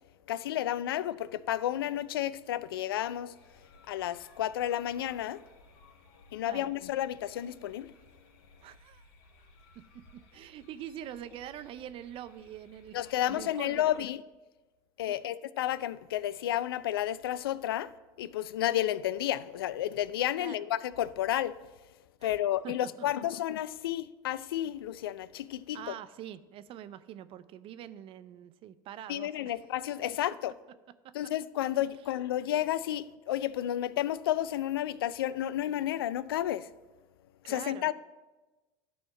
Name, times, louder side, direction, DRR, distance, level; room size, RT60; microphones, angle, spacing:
voice 1, 0.3-3.3 3.9-5.4 6.3-7.9 12.9-14.2 15.0-17.9 18.2-21.6 22.2-25.9 29.1-30.5 31.1-36.7 37.5-37.9, left 12 dB, 85° left, 0.4 m, -31 dB
sound 1, 3.3-14.1, left 2 dB, 65° left, 1.9 m, -60 dB
voice 2, 8.6-9.1 9.7-10.0 10.3-13.9 15.2-15.3 20.4-20.6 22.2-22.3 22.6-23.4 25.7-29.5 37.4-37.9, right 11 dB, 50° right, 0.6 m, -45 dB
12.5 x 4.3 x 5.8 m
hypercardioid pair, 85°, 12 cm